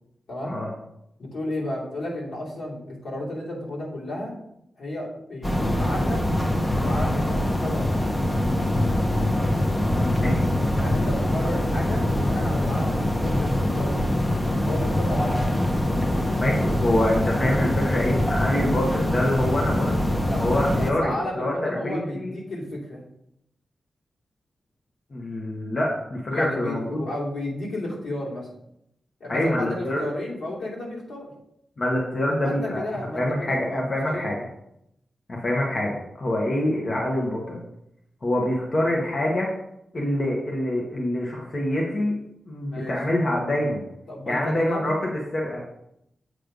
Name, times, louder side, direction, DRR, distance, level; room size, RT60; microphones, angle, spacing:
voice 1, 1.2-4.3 4.8-6.2 6.6-7.9 10.7-14.0 14.7-15.3 20.2-20.4 20.8-23.0 26.3-28.5 29.2-31.3 32.3-34.3 42.6-42.9 44.1-44.9, left 1 dB, 85° left, -6 dB, 2.8 m, -33 dB
sound 1, 5.4-20.9, left 1 dB, 20° left, 0.7 m, -24 dB
voice 2, 9.9-10.5 16.4-20.1 20.3-21.5 21.8-22.3 25.1-27.0 29.3-30.0 31.8-32.8 33.1-34.4 35.3-37.6 38.2-39.5 39.9-42.1 42.5-43.9 44.3-44.9 45.3-45.6, left 1 dB, 45° left, -2 dB, 1.2 m, -25 dB
7.8 x 3.3 x 5.2 m, 0.79 s
wide cardioid pair, 120°, 0 cm